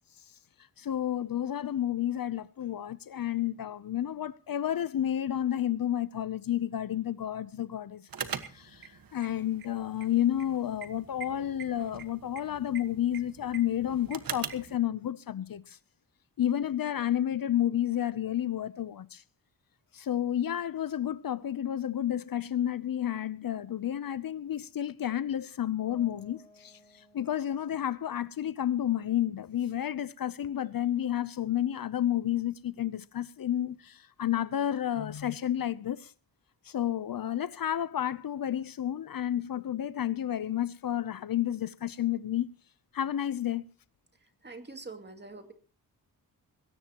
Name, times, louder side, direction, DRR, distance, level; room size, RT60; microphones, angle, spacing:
voice 1, 0.8-8.1 8.5-15.8 16.4-19.2 19.9-36.1 36.6-42.5 42.9-43.7, left 11 dB, 60° left, 0.7 m, -31 dB
sound 1, 8.1-14.7, right 7 dB, 60° right, 1.5 m, -42 dB
Piano, 25.9-31.6, left 1 dB, 15° left, 4.2 m, -62 dB
voice 2, 44.4-45.5, right 3 dB, 25° right, 2.4 m, -44 dB
21.0 x 17.5 x 2.9 m
wide cardioid pair, 125°, 39 cm